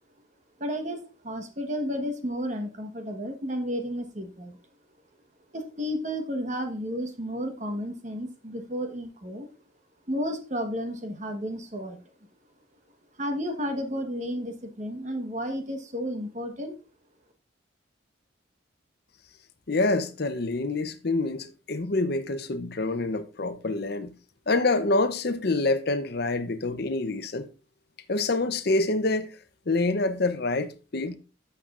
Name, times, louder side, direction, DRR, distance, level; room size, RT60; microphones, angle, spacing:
voice 1, 0.6-4.6 5.5-9.5 10.1-12.0 13.2-16.7, equal, 35° right, 1.2 m, -32 dB
voice 2, 19.7-24.1 24.5-27.5 28.1-29.3 29.7-31.2, left 2 dB, 50° left, 0.7 m, -26 dB
11.5 x 6.8 x 2.5 m
head